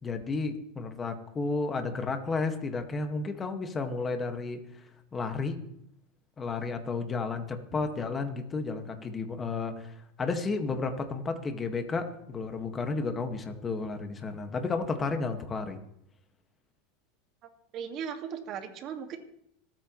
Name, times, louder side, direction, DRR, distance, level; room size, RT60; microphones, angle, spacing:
voice 1, 0.0-4.8 5.1-5.6 6.4-15.8, left 4 dB, 25° left, 6 dB, 1.8 m, -32 dB
voice 2, 17.7-19.2, right 7 dB, 45° right, 5 dB, 2.0 m, -37 dB
26.0 x 9.1 x 3.2 m, 0.75 s
supercardioid pair, 115°, 0 cm